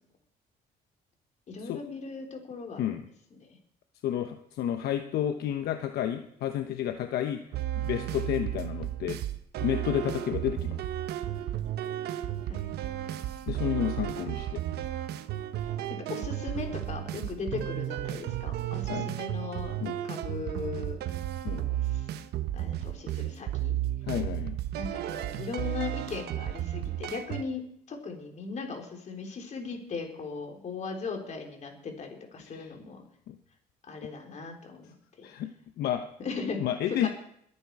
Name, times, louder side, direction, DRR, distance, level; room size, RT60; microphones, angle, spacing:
voice 1, 1.5-3.0 3.3-3.6 12.5-12.7 15.6-15.7 16.1-21.0 21.5-22.1 22.5-23.8 24.8-27.6 27.9-33.0 33.9-35.3 36.2-36.6 36.9-37.1, left 4 dB, 45° left, 2 dB, 4.2 m, -38 dB
voice 2, 4.0-7.4 7.8-9.2 9.6-10.8 13.5-14.6 18.9-19.1 19.8-20.0 21.4-21.6 24.1-24.6 32.5-32.7 33.3-33.4 35.2-35.5 35.8-36.1 36.6-37.1, left 10 dB, 70° left, 7 dB, 1.1 m, -31 dB
sound 1, 7.5-27.4, right 12 dB, 75° right, 1.1 m, -33 dB
21.5 x 10.0 x 4.9 m, 0.70 s
cardioid pair, 110°, 17 cm